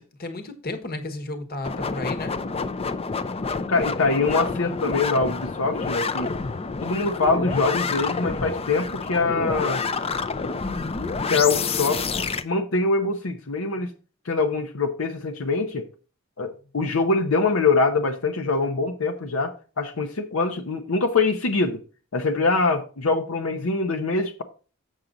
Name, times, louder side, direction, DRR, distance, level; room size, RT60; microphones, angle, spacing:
voice 1, 0.2-2.4, left 2 dB, 50° left, 1.3 m, -33 dB
sound 1, 1.6-12.4, left 4 dB, 30° left, 0.5 m, -28 dB
voice 2, 3.7-6.3 6.8-9.8 11.3-13.9 14.3-15.9 16.4-21.8 22.1-24.4, left 3 dB, 85° left, 0.9 m, -24 dB
7.4 x 6.6 x 3.9 m
head